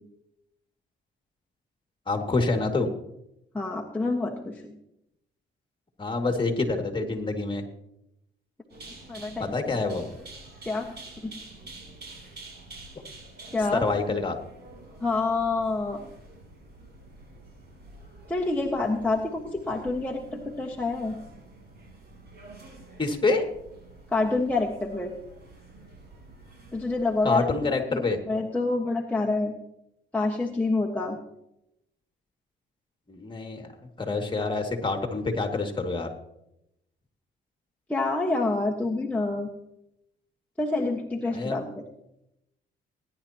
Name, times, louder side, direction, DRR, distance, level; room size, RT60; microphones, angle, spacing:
voice 1, 2.1-2.9 6.0-7.7 9.4-10.1 13.7-14.4 23.0-23.5 27.2-28.2 33.1-33.7 34.0-36.1 41.3-41.6, left 3 dB, 25° left, 4 dB, 2.3 m, -27 dB
voice 2, 3.5-4.7 9.1-9.5 10.6-10.9 11.2-11.3 13.5-13.8 15.0-16.0 18.3-21.2 24.1-25.1 26.7-27.5 27.9-28.0 28.3-29.5 30.1-31.2 37.9-39.5 40.6-41.8, left 3 dB, 5° left, -2 dB, 1.4 m, -27 dB
sound 1, 8.7-27.3, right 2 dB, 55° right, 5.9 m, -48 dB
20.0 x 10.5 x 2.9 m, 0.81 s
cardioid pair, 90°, 20 cm